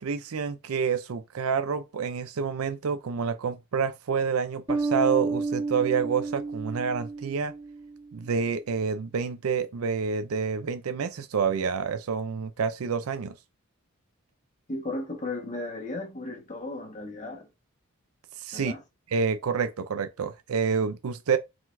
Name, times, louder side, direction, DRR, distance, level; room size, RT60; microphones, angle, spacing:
voice 1, 0.0-7.5 8.1-13.3 18.4-18.7 19.1-21.4, right 6 dB, 85° right, 0.5 m, -28 dB
Bass guitar, 4.7-8.2, right 3 dB, 20° right, 0.6 m, -31 dB
voice 2, 14.7-17.5 18.5-18.8, left 2 dB, 35° left, 1.2 m, -35 dB
4.8 x 3.9 x 2.6 m
head